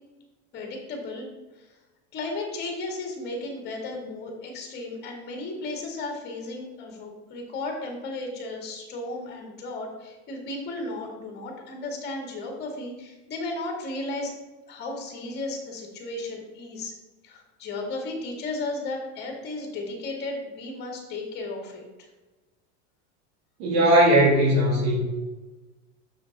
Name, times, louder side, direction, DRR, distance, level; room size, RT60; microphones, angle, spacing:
voice 1, 0.5-1.3 1.6-1.7 2.1-14.3 14.7-16.9 17.2-21.9, left 2 dB, 30° left, 1 dB, 2.0 m, -34 dB
voice 2, 23.6-25.0, right 1 dB, 80° right, -6 dB, 2.6 m, -18 dB
6.8 x 6.6 x 4.0 m, 1.2 s
supercardioid pair, 150°, 35 cm